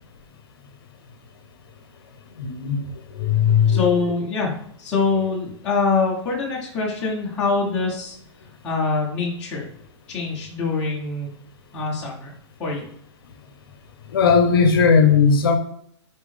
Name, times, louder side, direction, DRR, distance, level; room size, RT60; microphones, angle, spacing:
voice 1, 2.4-2.8 3.1-4.0 5.1-5.2 14.1-15.6, left 6 dB, 50° left, 6 dB, 0.6 m, -17 dB
voice 2, 3.7-4.5 4.8-8.1 8.6-9.7 10.1-11.3 11.7-12.3 12.6-12.9, left 4 dB, 5° left, -6 dB, 0.5 m, -24 dB
4.3 x 3.5 x 3.3 m, 0.65 s
hypercardioid pair, 180°, 16 cm